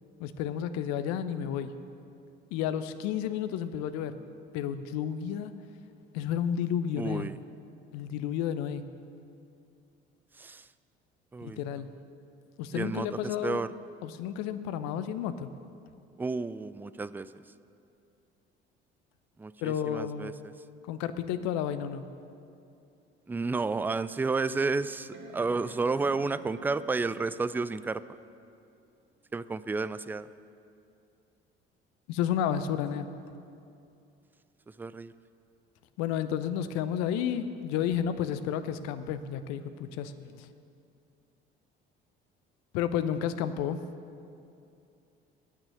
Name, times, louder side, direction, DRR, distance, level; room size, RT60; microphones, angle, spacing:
voice 1, 0.2-1.8 2.5-4.2 4.5-5.5 6.1-7.3 7.9-8.9 11.4-11.9 12.6-13.6 14.0-15.5 19.6-20.3 20.9-22.1 32.1-33.1 36.0-40.5 42.7-43.8, left 9 dB, 60° left, 11 dB, 0.8 m, -31 dB
voice 2, 7.0-7.4 10.4-10.7 11.3-11.6 12.7-13.7 16.2-17.3 19.4-20.3 23.3-28.0 29.3-30.3 34.8-35.1, right 3 dB, 5° right, 15 dB, 0.3 m, -31 dB
sound 1, 23.0-23.1 23.7-23.8 25.1-27.6 29.3-29.4, right 3 dB, 40° right, 1.9 m, -49 dB
9.3 x 9.0 x 9.6 m, 2.6 s
figure-of-eight pair, 55°, 30 cm